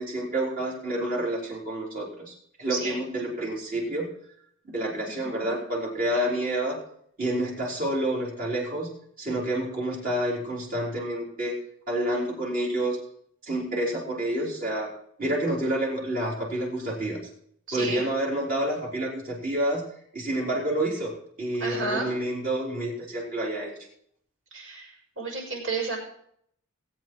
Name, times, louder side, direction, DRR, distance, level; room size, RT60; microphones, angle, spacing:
voice 1, 0.0-4.1 4.6-6.8 7.2-8.9 9.2-11.5 11.9-13.0 13.5-14.9 15.2-17.2 17.7-19.8 20.1-21.1 21.4-23.7, right 1 dB, 40° right, -4 dB, 4.2 m, -28 dB
voice 2, 2.7-3.0 5.2-5.6 17.7-18.1 21.6-22.1 24.5-26.0, right 3 dB, 65° right, -1 dB, 6.2 m, -32 dB
19.0 x 8.8 x 4.6 m, 0.68 s
head